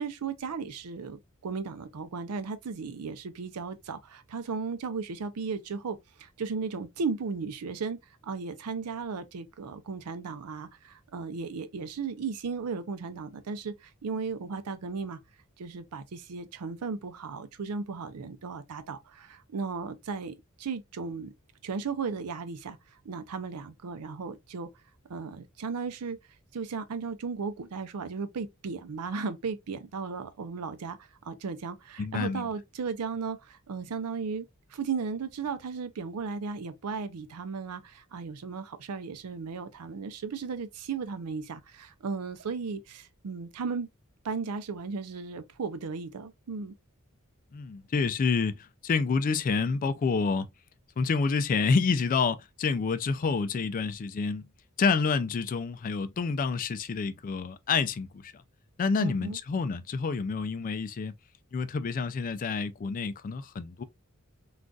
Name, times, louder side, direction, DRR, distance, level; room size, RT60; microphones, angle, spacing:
voice 1, 0.0-15.2 15.6-21.3 21.6-22.8 23.0-24.7 25.1-26.2 26.5-31.0 31.2-43.9 44.2-46.7 59.0-59.4, right 5 dB, 85° right, 0.5 m, -35 dB
voice 2, 32.0-32.5 47.5-50.5 51.0-54.4 54.8-58.4 58.8-61.1 61.5-63.8, left 5 dB, 40° left, 0.3 m, -28 dB
3.8 x 2.4 x 2.3 m
head